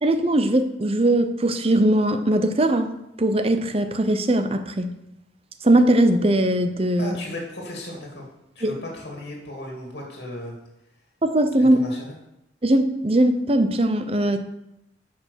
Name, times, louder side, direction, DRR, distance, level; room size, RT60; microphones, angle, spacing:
voice 1, 0.0-4.9 5.6-7.2 8.6-8.7 11.2-11.8 12.6-14.4, right 1 dB, 30° right, 8 dB, 0.8 m, -20 dB
voice 2, 7.0-8.3 8.5-10.6 11.6-12.2, left 1 dB, 70° left, -1 dB, 2.2 m, -35 dB
10.5 x 5.5 x 6.4 m, 0.86 s
head